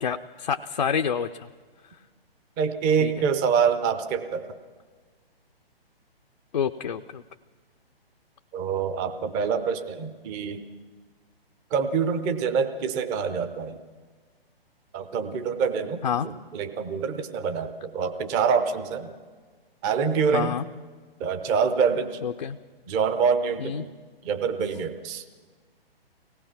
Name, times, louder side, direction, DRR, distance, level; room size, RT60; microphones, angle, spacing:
voice 1, 0.0-1.5 3.0-3.2 6.5-7.2 16.0-16.3 20.3-20.6 22.2-22.6 23.6-23.9, left 7 dB, 45° left, 6 dB, 0.5 m, -28 dB
voice 2, 2.6-4.5 8.5-10.6 11.7-13.8 14.9-19.1 19.8-20.6 21.2-22.2 22.9-23.9 24.2-25.2, right 6 dB, 15° right, 9 dB, 0.6 m, -26 dB
24.5 x 18.0 x 5.9 m, 1.5 s
figure-of-eight pair, 130°, 31 cm